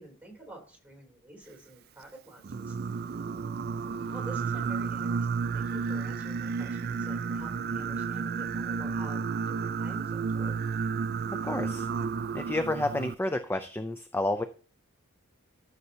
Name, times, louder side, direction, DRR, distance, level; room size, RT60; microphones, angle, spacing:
voice 1, 0.0-3.2 4.1-10.5, right 1 dB, 5° right, 1 dB, 3.4 m, -48 dB
Singing, 2.4-13.1, right 5 dB, 45° right, 0.4 m, -32 dB
voice 2, 11.4-11.9 12.3-14.4, left 1 dB, 10° left, 8 dB, 0.5 m, -30 dB
14.0 x 6.6 x 2.8 m, 0.41 s
head